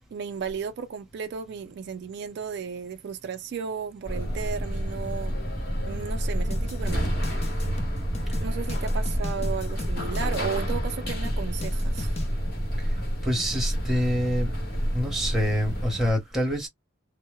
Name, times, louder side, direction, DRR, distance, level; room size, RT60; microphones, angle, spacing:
voice 1, 0.1-5.4 5.8-7.5 8.4-12.2, right 6 dB, 55° right, 0.3 m, -34 dB
sound 1, 4.0-16.1, equal, 50° left, 1.0 m, -29 dB
sound 2, 6.5-12.3, left 1 dB, 30° left, 0.5 m, -36 dB
voice 2, 12.8-14.6 14.9-16.7, equal, ahead, 0.8 m, -27 dB
2.1 x 2.0 x 3.0 m
head